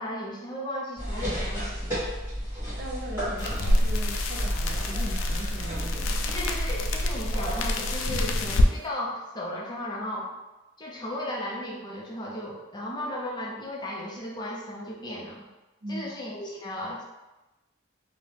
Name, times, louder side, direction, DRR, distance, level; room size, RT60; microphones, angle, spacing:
voice 1, 0.0-2.0 6.3-10.3 10.8-15.5 15.9-17.0, left 1 dB, 20° left, -3 dB, 0.5 m, -35 dB
sound 1, 1.0-7.8, equal, 15° right, 1.2 m, -32 dB
voice 2, 2.8-6.4 15.8-16.1, equal, 50° right, 0 dB, 0.5 m, -39 dB
sound 2, 3.4-8.7, left 1 dB, 75° left, 0.3 m, -26 dB
2.7 x 2.0 x 3.2 m, 1.1 s
head